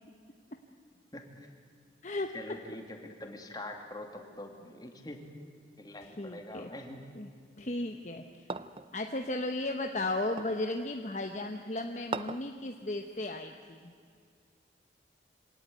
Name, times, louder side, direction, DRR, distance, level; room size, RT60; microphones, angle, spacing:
voice 1, 1.1-1.5 2.3-5.3 5.8-7.1, left 1 dB, 20° left, 3 dB, 2.5 m, -44 dB
voice 2, 2.0-2.3 6.2-6.7 7.2-7.3 7.6-8.2 8.9-13.9, left 2 dB, 40° left, 5 dB, 1.1 m, -35 dB
sound 1, 8.5-8.9 10.4-10.6 12.1-12.5, right 3 dB, 30° right, 0.6 m, -38 dB
25.5 x 17.5 x 9.4 m, 2.3 s
head